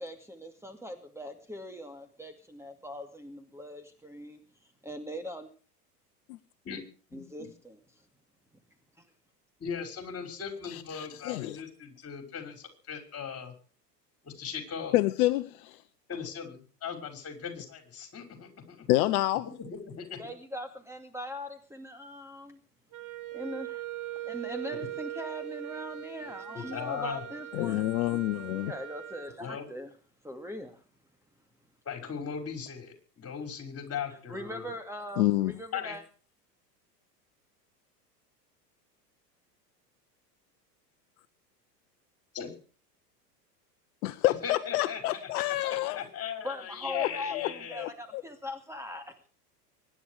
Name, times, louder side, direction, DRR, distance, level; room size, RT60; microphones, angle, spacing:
voice 1, 0.0-4.4 4.8-5.5 7.1-7.8 9.0-9.1 20.2-22.6 23.3-23.8 24.2-27.8 28.5-29.9 30.2-30.8 34.3-36.0 46.4-49.1, left 1 dB, 5° right, 6 dB, 2.4 m, -41 dB
voice 2, 7.1-7.5 9.6-13.5 14.2-15.0 16.1-18.9 20.0-20.2 24.7-24.9 26.5-27.2 29.4-29.7 31.9-34.7 35.7-35.9 42.3-42.5 44.2-47.9, left 7 dB, 30° left, 5 dB, 5.7 m, -39 dB
voice 3, 10.6-11.6 14.9-15.8 18.9-19.5 27.5-28.7 35.2-35.5 44.0-46.0 46.9-48.2, left 16 dB, 60° left, 12 dB, 1.0 m, -28 dB
Wind instrument woodwind instrument, 22.9-29.4, right 13 dB, 40° right, 2.0 m, -40 dB
24.5 x 10.5 x 4.9 m, 0.39 s
hypercardioid pair, 90°, 48 cm